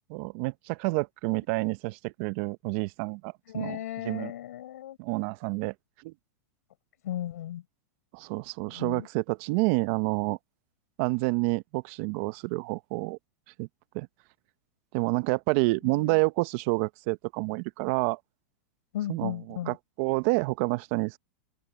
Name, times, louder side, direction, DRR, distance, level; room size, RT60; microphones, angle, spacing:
voice 1, 0.1-3.8 4.0-4.3 5.0-5.7 6.0-6.1 8.1-10.4 11.0-13.2 13.6-13.7 13.9-14.1 14.9-18.2 19.1-21.2, right 25 dB, 55° right, 0.8 m, -28 dB
voice 2, 3.5-5.0 7.0-7.6 8.7-9.1 15.8-16.2 18.9-19.8, left 12 dB, 80° left, 4.9 m, -36 dB
open air
supercardioid pair, 130°, 8 cm